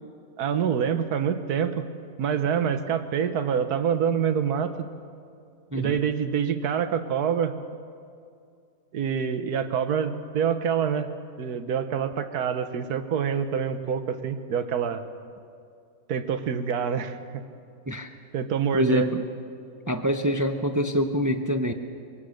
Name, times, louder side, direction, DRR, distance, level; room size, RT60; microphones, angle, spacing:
voice 1, 0.4-1.9 2.2-4.9 5.7-7.5 8.9-11.1 11.4-15.0 16.1-17.2 18.3-19.1, right 7 dB, 85° right, 10 dB, 1.5 m, -26 dB
voice 2, 5.7-6.0 17.9-18.1 18.7-19.2 19.9-21.7, equal, 20° right, 7 dB, 0.4 m, -25 dB
23.5 x 17.5 x 6.4 m, 2.4 s
omnidirectional pair, 1.6 m